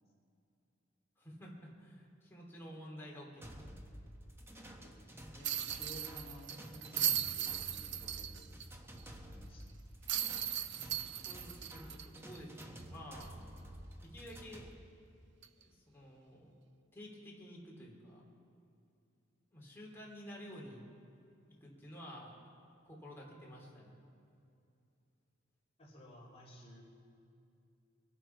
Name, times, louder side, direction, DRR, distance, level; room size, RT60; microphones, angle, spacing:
voice 1, 1.2-3.6 11.2-13.3 14.0-14.6 15.6-16.6 16.9-18.2 19.5-20.8 21.6-22.3 22.8-24.0, equal, 10° left, -4 dB, 3.2 m, -51 dB
sound 1, 3.4-14.7, equal, 10° right, 1.2 m, -51 dB
voice 2, 4.8-5.5 5.8-8.5 8.8-8.9 9.2-9.7 25.8-26.8, equal, 30° left, -4 dB, 2.8 m, -55 dB
sound 2, 5.4-8.7 9.0-9.1 10.1-12.8 13.2-13.3 15.4-15.6, right 10 dB, 60° right, 0.6 m, -37 dB
23.5 x 11.5 x 4.6 m, 2.6 s
head